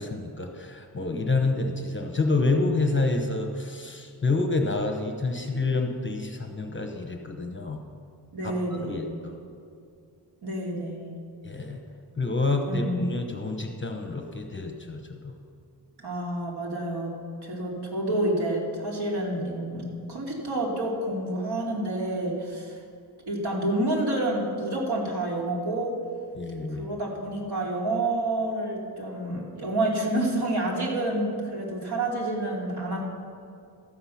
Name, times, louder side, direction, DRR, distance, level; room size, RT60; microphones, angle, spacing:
voice 1, 0.0-7.8 8.4-9.3 11.4-11.8 12.2-15.3 26.4-26.9, left 3 dB, 25° left, 4 dB, 0.9 m, -28 dB
voice 2, 8.3-9.1 10.4-11.1 12.7-13.0 16.0-17.1 17.4-22.8 23.3-26.0 26.8-33.0, right 1 dB, 65° right, -3 dB, 2.6 m, -29 dB
13.5 x 7.8 x 5.8 m, 2.4 s
wide cardioid pair, 125°, 43 cm